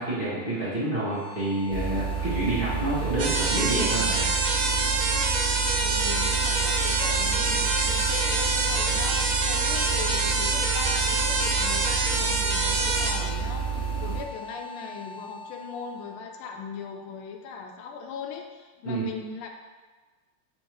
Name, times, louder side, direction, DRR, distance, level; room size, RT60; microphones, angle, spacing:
voice 1, 0.0-4.3 18.8-19.1, right 2 dB, 30° right, -11 dB, 1.1 m, -28 dB
sound 1, 0.9-17.8, left 2 dB, 10° right, 0.9 m, -42 dB
sound 2, 1.7-14.2, right 6 dB, 50° right, 1.3 m, -30 dB
sound 3, 3.2-13.1, right 3 dB, 75° right, 0.8 m, -26 dB
voice 2, 5.8-19.5, left 6 dB, 85° left, 3 dB, 1.5 m, -39 dB
4.3 x 2.6 x 4.6 m, 1.3 s
omnidirectional pair, 2.3 m